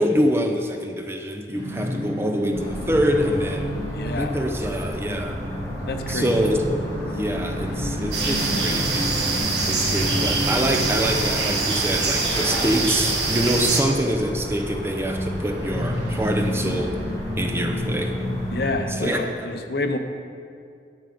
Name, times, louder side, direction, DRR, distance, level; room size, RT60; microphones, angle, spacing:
voice 1, 0.0-3.7 4.2-5.4 6.1-6.7 7.0-9.1 9.7-17.0 17.4-18.1 18.9-19.6, equal, 15° right, 4 dB, 0.6 m, -25 dB
sound 1, 1.5-19.3, equal, 35° right, 2.8 m, -31 dB
sound 2, 2.5-18.7, equal, 20° left, 2.0 m, -34 dB
voice 2, 3.9-4.4 5.9-6.3 18.5-20.0, left 2 dB, 60° left, 7 dB, 0.7 m, -28 dB
sound 3, 8.1-13.8, right 3 dB, 85° right, 1.4 m, -24 dB
11.0 x 6.4 x 5.2 m, 2.3 s
head